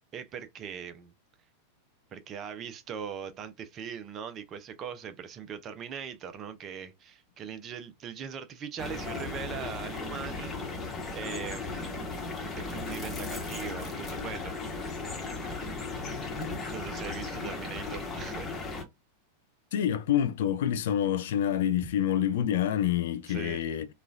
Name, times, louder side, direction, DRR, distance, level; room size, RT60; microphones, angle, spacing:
voice 1, 0.1-1.1 2.1-10.9 11.1-12.0 12.7-14.5 14.8-15.0 16.7-18.5 23.3-23.6, right 7 dB, 30° right, 0.5 m, -40 dB
sound 1, 8.8-18.8, left 3 dB, 20° left, 1.1 m, -36 dB
voice 2, 19.7-23.9, left 10 dB, 55° left, 0.3 m, -27 dB
3.0 x 2.3 x 2.4 m
figure-of-eight pair, 90°, 0 cm